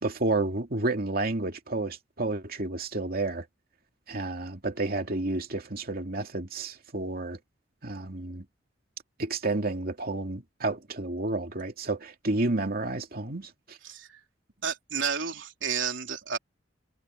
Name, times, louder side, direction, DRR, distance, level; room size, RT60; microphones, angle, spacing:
voice 1, 0.0-3.5 4.1-7.4 7.8-8.4 9.2-13.8, right 2 dB, 55° right, 2.5 m, -30 dB
voice 2, 13.8-14.2 14.6-16.4, right 6 dB, 85° right, 3.7 m, -31 dB
head